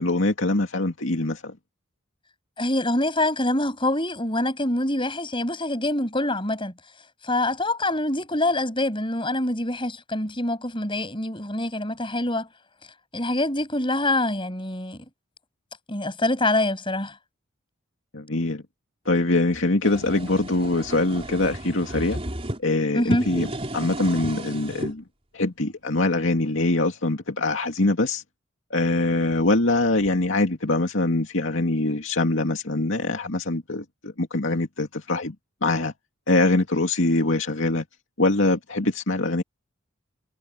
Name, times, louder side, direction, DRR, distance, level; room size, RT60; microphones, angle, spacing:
voice 1, 0.0-1.5 18.1-18.6 19.1-22.2 22.6-23.5 23.7-25.0 25.3-28.2 28.7-35.3 35.6-35.9 36.3-37.8 38.2-39.4, left 2 dB, 65° left, 2.5 m, -23 dB
voice 2, 2.6-6.7 7.2-12.5 13.1-15.0 15.9-17.1 22.9-23.3, left 1 dB, 25° left, 6.8 m, -25 dB
sound 1, 19.5-22.6 23.0-24.9, right 1 dB, 25° right, 4.3 m, -33 dB
head